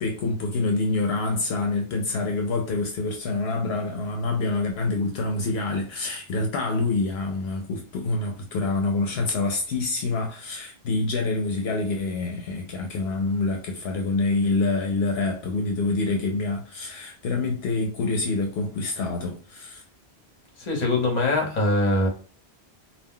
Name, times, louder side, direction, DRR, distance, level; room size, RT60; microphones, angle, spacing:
voice 1, 0.0-19.8, left 3 dB, 75° left, 0.8 m, -26 dB
voice 2, 20.6-22.1, left 2 dB, 45° left, 0.9 m, -22 dB
2.4 x 2.1 x 3.6 m
omnidirectional pair, 1.1 m